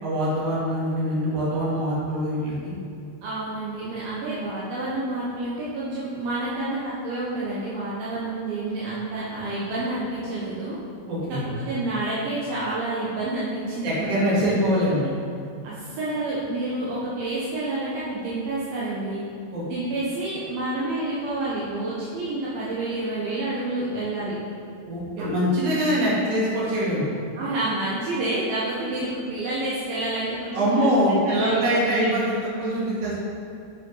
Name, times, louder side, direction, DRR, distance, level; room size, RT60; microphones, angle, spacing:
voice 1, 0.0-2.7 11.1-11.4 13.8-15.1 19.5-19.6 24.9-27.1 30.5-33.2, equal, 55° right, -7 dB, 3.1 m, -23 dB
voice 2, 3.2-10.8 11.7-14.2 15.6-19.2 19.7-24.4 27.4-32.2, right 2 dB, 75° right, -8 dB, 2.8 m, -29 dB
8.0 x 6.4 x 3.9 m, 2.4 s
omnidirectional pair, 4.3 m